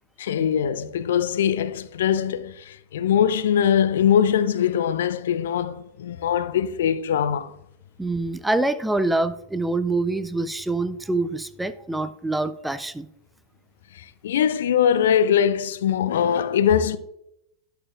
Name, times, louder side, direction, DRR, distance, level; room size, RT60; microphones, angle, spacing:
voice 1, 0.2-7.6 13.9-17.0, left 8 dB, 60° left, 0.4 m, -22 dB
voice 2, 8.0-13.1, right 2 dB, 5° right, 0.4 m, -25 dB
11.0 x 6.7 x 2.4 m
figure-of-eight pair, 90°, 0 cm